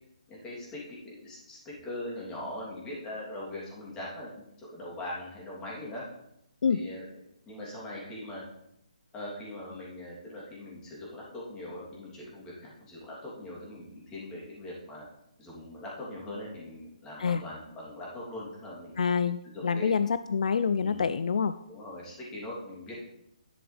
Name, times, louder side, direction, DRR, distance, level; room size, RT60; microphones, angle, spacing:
voice 1, 0.3-6.0 6.7-7.0 7.4-8.4 9.1-15.1 15.4-18.9 19.4-20.0 20.8-21.0 21.7-22.9, left 1 dB, 15° left, -5 dB, 3.2 m, -41 dB
voice 2, 19.0-21.5, left 6 dB, 65° left, 13 dB, 0.4 m, -27 dB
11.0 x 7.8 x 3.4 m, 0.78 s
hypercardioid pair, 155°, 4 cm